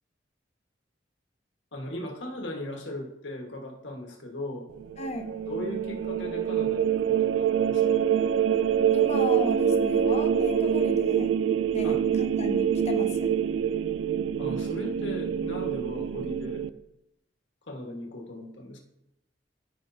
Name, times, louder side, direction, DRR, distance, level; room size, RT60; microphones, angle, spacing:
voice 1, 1.7-4.7 5.5-8.0 11.8-12.0 14.4-16.6 17.7-18.8, left 1 dB, 85° left, 1 dB, 1.6 m, -38 dB
sound 1, 4.8-16.7, right 8 dB, 90° right, 0.3 m, -25 dB
voice 2, 5.0-5.3 8.9-11.3 11.7-13.3, left 2 dB, 35° left, 5 dB, 0.8 m, -35 dB
14.0 x 5.3 x 2.7 m, 0.86 s
head